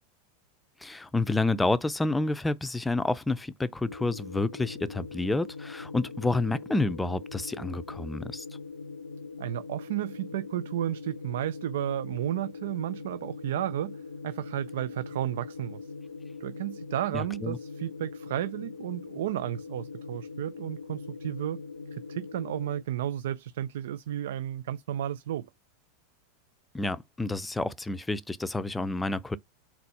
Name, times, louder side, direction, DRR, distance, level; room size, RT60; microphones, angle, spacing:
voice 1, 0.8-8.4 17.1-17.6 26.7-29.4, left 2 dB, 10° left, 0.5 m, -29 dB
sound 1, 3.8-22.8, left 4 dB, 85° left, 0.4 m, -42 dB
voice 2, 9.4-14.0 14.2-15.9 16.4-21.6 21.9-25.4, right 12 dB, 70° right, 0.3 m, -33 dB
4.2 x 4.2 x 5.4 m
hypercardioid pair, 90°, 0 cm